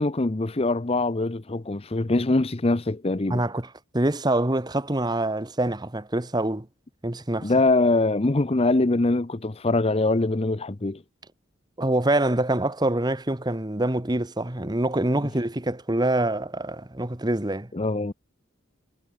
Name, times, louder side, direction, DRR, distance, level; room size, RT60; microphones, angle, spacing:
voice 1, 0.0-3.4 7.4-11.0 17.7-18.1, left 2 dB, 30° left, 0.7 m, -23 dB
voice 2, 3.3-6.7 7.0-7.5 11.8-17.7, right 1 dB, 20° right, 1.2 m, -25 dB
head